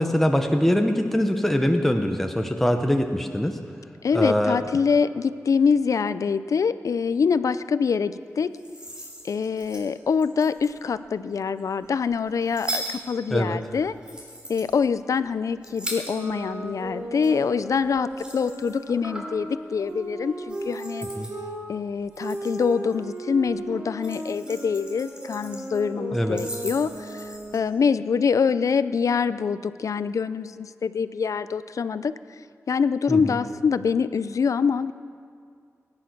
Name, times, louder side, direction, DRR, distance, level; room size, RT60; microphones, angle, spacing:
voice 1, 0.0-3.6 4.1-4.6 13.3-13.6 21.1-21.3 26.1-26.4 33.1-33.4, equal, 5° left, 4 dB, 0.9 m, -23 dB
voice 2, 4.0-8.5 9.3-13.9 14.5-21.1 21.7-27.2 27.5-32.1 32.7-34.9, left 6 dB, 80° left, 14 dB, 0.5 m, -25 dB
sound 1, 8.4-11.0 11.6-16.6 16.8-19.4 19.8-20.1 20.5-21.4 21.9-23.2 23.5-25.8 26.1-27.6, right 1 dB, 15° right, 3.2 m, -39 dB
sound 2, 16.0-21.6 22.2-27.8, right 1 dB, 65° right, 2.9 m, -36 dB
20.5 x 10.5 x 6.1 m, 2.2 s
wide cardioid pair, 105°, 6 cm